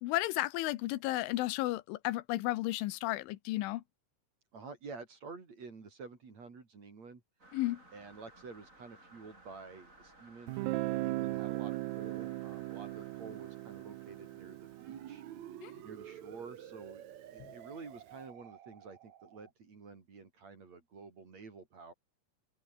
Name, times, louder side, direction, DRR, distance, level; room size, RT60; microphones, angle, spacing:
voice 1, 0.0-3.8 7.5-7.8 15.6-15.7 17.4-17.5, left 17 dB, 85° left, 3.5 m, -33 dB
voice 2, 4.5-7.2 7.9-15.2 15.8-17.1 17.3-21.9, right 4 dB, 40° right, 4.6 m, -50 dB
sound 1, 7.4-16.3, right 1 dB, 15° right, 7.6 m, -60 dB
Guitar, 10.5-16.2, right 20 dB, 85° right, 2.3 m, -38 dB
sound 2, 14.7-19.5, right 10 dB, 65° right, 1.8 m, -50 dB
open air
omnidirectional pair, 5.4 m